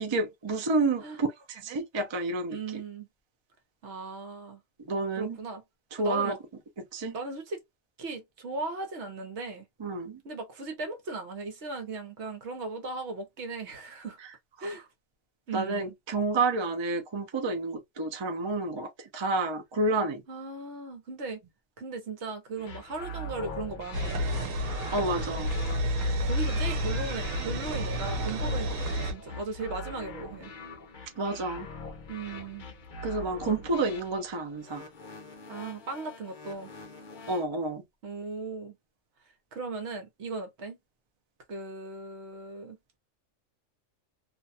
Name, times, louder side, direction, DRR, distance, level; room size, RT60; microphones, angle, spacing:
voice 1, 0.0-2.6 4.9-5.4 6.0-6.3 6.9-7.1 9.8-10.2 15.5-20.2 24.9-25.5 31.2-31.7 33.0-34.8 37.3-37.8, right 2 dB, 45° right, 0.3 m, -29 dB
voice 2, 2.5-3.1 3.8-4.6 5.2-5.6 6.0-6.4 7.1-7.6 8.0-9.6 10.2-14.2 14.6-14.9 15.5-15.9 20.3-21.4 21.8-24.5 26.2-30.5 32.1-32.7 33.4-33.9 35.5-36.7 38.0-38.7 39.5-40.8 41.5-43.0, right 3 dB, 60° right, 1.1 m, -37 dB
sound 1, 22.6-37.4, left 1 dB, 50° left, 0.6 m, -43 dB
sound 2, 23.9-29.1, equal, 85° right, 1.1 m, -30 dB
2.5 x 2.2 x 2.5 m
omnidirectional pair, 1.3 m